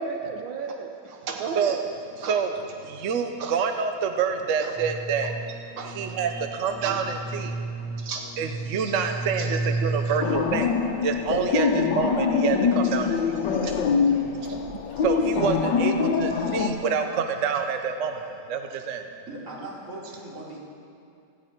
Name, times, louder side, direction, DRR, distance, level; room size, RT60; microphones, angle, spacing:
voice 1, 0.0-1.8 2.2-2.4 3.0-3.1 3.4-3.5 4.6-4.7 5.8-5.9 6.3-6.4 6.8-7.0 8.0-8.2 8.8-8.9 9.4-9.5 13.5-13.7, right 5 dB, 80° right, 3 dB, 1.6 m, -33 dB
voice 2, 2.2-2.6 2.9-5.3 5.8-7.5 8.4-10.7 11.0-13.3 15.0-19.0, right 6 dB, 60° right, 6 dB, 0.8 m, -27 dB
sound 1, 4.7-10.7, right 2 dB, ahead, 3.0 m, -33 dB
voice 3, 6.8-7.7 14.1-14.7 19.3-20.6, right 1 dB, 40° right, -6 dB, 3.6 m, -41 dB
sound 2, 10.2-16.7, left 5 dB, 70° left, 1.5 m, -24 dB
17.0 x 14.0 x 4.5 m, 2.5 s
omnidirectional pair, 2.1 m